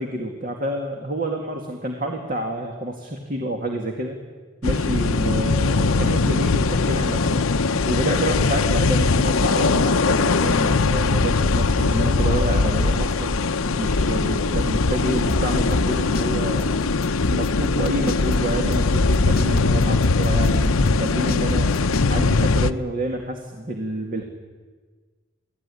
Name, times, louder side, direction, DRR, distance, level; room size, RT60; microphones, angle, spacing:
voice 1, 0.0-4.2 4.6-7.5 7.9-13.4 13.8-16.9 17.3-21.7 22.1-24.2, right 1 dB, 40° right, 2 dB, 2.3 m, -28 dB
sound 1, 4.6-22.7, left 3 dB, 80° left, 0.8 m, -20 dB
sound 2, 15.3-16.3 16.6-16.7 17.0-18.3 18.7-22.1, left 2 dB, 45° left, 0.9 m, -27 dB
28.5 x 18.0 x 10.0 m, 1.5 s
head